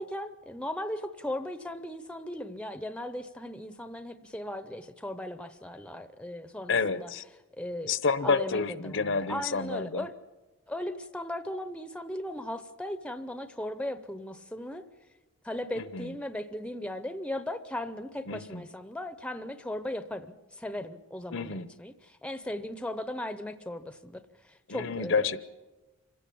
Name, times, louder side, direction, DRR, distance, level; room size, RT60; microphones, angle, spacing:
voice 1, 0.0-7.1 7.6-7.9 8.2-10.1 10.7-14.8 15.4-25.3, left 1 dB, 5° left, 11 dB, 0.7 m, -37 dB
voice 2, 6.7-7.2 7.8-10.1 15.7-16.1 18.3-18.6 21.3-21.7 24.7-25.4, left 4 dB, 55° left, 14 dB, 0.9 m, -29 dB
26.0 x 16.5 x 8.6 m, 1.2 s
head